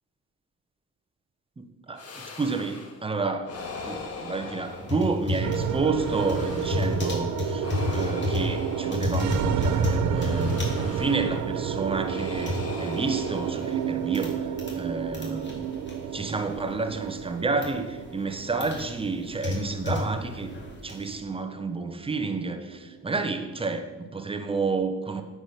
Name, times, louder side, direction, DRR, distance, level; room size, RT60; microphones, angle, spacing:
voice 1, 1.6-3.6 3.8-7.7 7.9-15.8 16.1-20.5 20.8-25.2, right 4 dB, 20° right, 7 dB, 0.9 m, -30 dB
sound 1, 2.0-3.0 3.4-5.4 5.9-7.1 7.6-9.6 10.1-11.5 12.0-14.1, left 3 dB, 50° left, 1.4 m, -41 dB
sound 2, 4.7-14.8 15.1-16.7 17.1-17.7 18.2-21.2, left 2 dB, 35° left, 2.2 m, -32 dB
sound 3, 5.4-23.8, right 8 dB, 70° right, 0.7 m, -31 dB
8.8 x 4.8 x 5.8 m, 1.2 s
cardioid pair, 90°, 30 cm